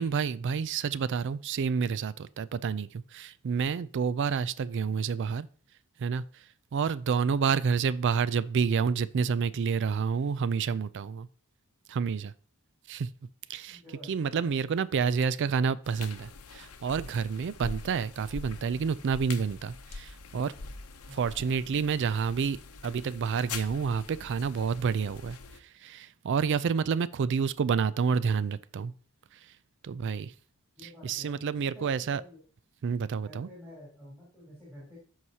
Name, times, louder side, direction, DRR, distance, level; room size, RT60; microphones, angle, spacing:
voice 1, 0.0-5.5 6.0-6.4 6.7-11.3 11.9-12.3 12.9-13.1 13.5-20.5 21.1-28.9 29.8-30.3 30.8-32.2 32.8-33.5, right 6 dB, 55° right, 0.4 m, -29 dB
voice 2, 13.7-14.5 21.1-21.5 30.8-31.4 31.7-32.4 33.2-35.0, equal, 10° right, 3.6 m, -49 dB
sound 1, 15.8-25.6, left 4 dB, 80° left, 0.8 m, -44 dB
13.0 x 4.8 x 2.8 m
head